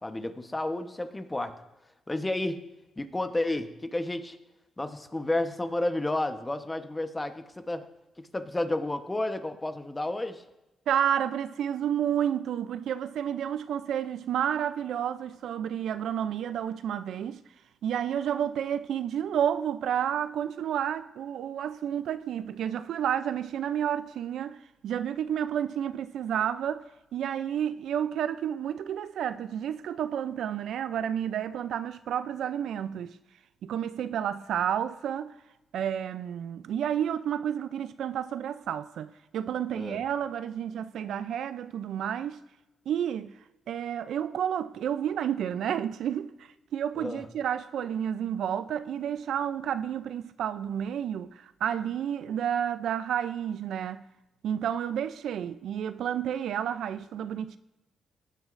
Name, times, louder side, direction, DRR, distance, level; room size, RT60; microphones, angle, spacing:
voice 1, 0.0-1.6 2.1-2.6 3.0-4.4 4.8-7.9 8.2-10.4 39.7-40.0 47.0-47.3, left 2 dB, 15° left, 1.0 m, -31 dB
voice 2, 10.9-17.4 17.8-26.9 27.1-33.2 33.6-35.4 35.7-42.4 42.9-43.4 43.7-54.1 54.4-57.6, right 9 dB, 75° right, 0.4 m, -30 dB
17.0 x 9.3 x 2.5 m
cardioid pair, 85°, 0 cm